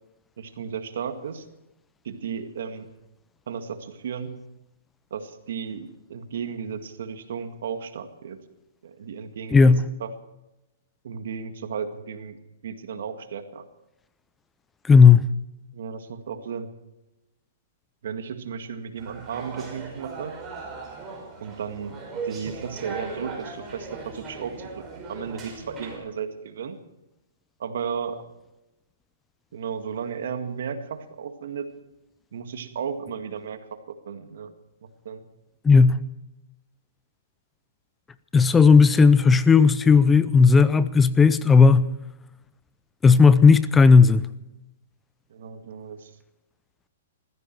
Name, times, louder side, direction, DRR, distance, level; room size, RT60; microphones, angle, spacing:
voice 1, 0.4-1.5 2.0-2.9 3.5-4.4 5.1-8.4 8.8-9.7 10.0-10.1 11.0-13.6 15.7-16.7 18.0-20.4 21.4-26.8 27.6-28.3 29.5-31.7 32.3-34.5 34.8-35.2 45.3-46.1, right 6 dB, 70° right, 1.9 m, -34 dB
voice 2, 9.5-9.8 14.8-15.2 35.6-36.0 38.3-41.9 43.0-44.3, left 5 dB, 10° left, 0.5 m, -14 dB
sound 1, 19.0-26.0, right 4 dB, 15° right, 5.8 m, -38 dB
20.0 x 15.0 x 4.6 m
hypercardioid pair, 140°, 0 cm